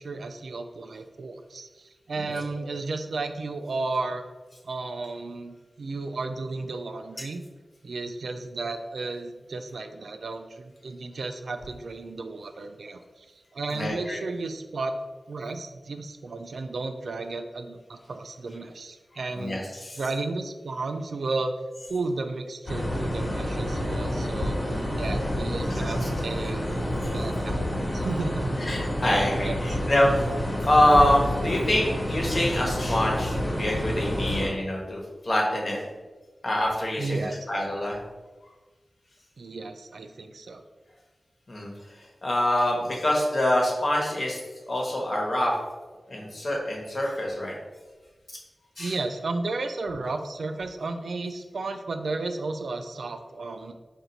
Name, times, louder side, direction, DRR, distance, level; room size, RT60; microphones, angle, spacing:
voice 1, 0.0-4.2 4.6-7.4 7.8-14.9 15.3-19.6 20.0-21.5 21.9-24.6 24.9-28.6 29.4-29.9 37.0-37.5 39.4-40.6 48.8-53.7, right 3 dB, 80° right, 7 dB, 0.3 m, -33 dB
voice 2, 13.7-14.2 19.3-20.0 25.7-26.1 27.0-27.1 28.6-30.1 30.6-35.8 36.4-38.0 41.5-41.7 42.2-44.4 44.7-45.5 46.1-47.5 48.8-48.9, left 1 dB, 55° left, -1 dB, 1.1 m, -25 dB
sound 1, 22.7-34.5, equal, 35° left, 1.3 m, -28 dB
4.4 x 2.6 x 3.9 m, 1.3 s
cardioid pair, 55°, 0 cm